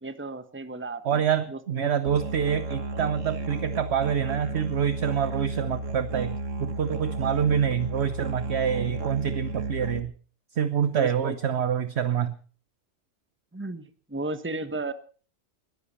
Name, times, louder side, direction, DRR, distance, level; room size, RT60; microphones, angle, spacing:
voice 1, 0.0-1.2 1.5-1.9 10.9-11.3 13.5-14.9, right 2 dB, 10° right, 11 dB, 1.2 m, -34 dB
voice 2, 1.0-10.1 10.5-12.4, right 8 dB, 60° right, 12 dB, 1.2 m, -26 dB
Musical instrument, 2.1-10.0, right 2 dB, 80° right, 2.0 m, -33 dB
21.0 x 15.0 x 4.3 m, 0.40 s
omnidirectional pair, 1.3 m